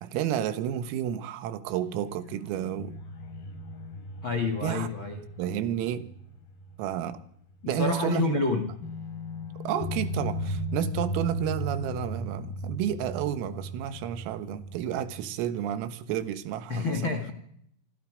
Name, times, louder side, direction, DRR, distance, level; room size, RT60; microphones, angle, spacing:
voice 1, 0.0-3.0 4.6-4.9 5.4-6.1 6.8-7.2 7.7-8.4 9.7-17.2, right 10 dB, 85° right, 4.0 m, -31 dB
sound 1, 1.8-7.2 7.5-7.6 8.8-15.4, equal, 50° left, 4.9 m, -37 dB
voice 2, 4.2-5.2 7.6-8.7 16.7-17.3, left 4 dB, 85° left, 1.0 m, -28 dB
25.5 x 25.0 x 5.1 m
omnidirectional pair, 5.9 m